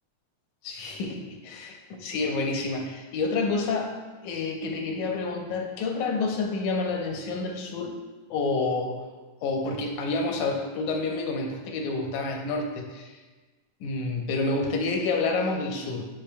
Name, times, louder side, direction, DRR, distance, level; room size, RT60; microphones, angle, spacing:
voice 1, 0.6-4.0 4.2-7.9 8.3-9.1 9.4-13.2 13.8-16.1, left 3 dB, 85° left, 3 dB, 2.2 m, -29 dB
10.0 x 5.4 x 2.2 m, 1.3 s
omnidirectional pair, 3.4 m